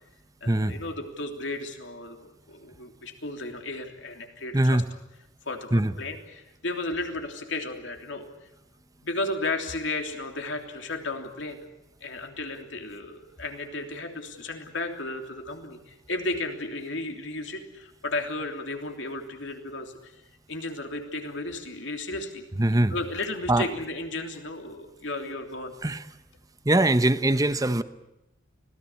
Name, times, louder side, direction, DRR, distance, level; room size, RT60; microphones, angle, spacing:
voice 1, 0.4-4.8 5.4-8.3 9.0-11.6 12.0-20.2 20.5-22.4 22.9-25.7, left 2 dB, 65° left, 4 dB, 3.3 m, -34 dB
voice 2, 4.5-4.8 5.7-5.9 22.6-22.9 23.5-23.7 25.8-26.0 26.6-27.8, right 1 dB, 20° right, 12 dB, 0.9 m, -22 dB
25.0 x 18.5 x 8.5 m, 0.92 s
head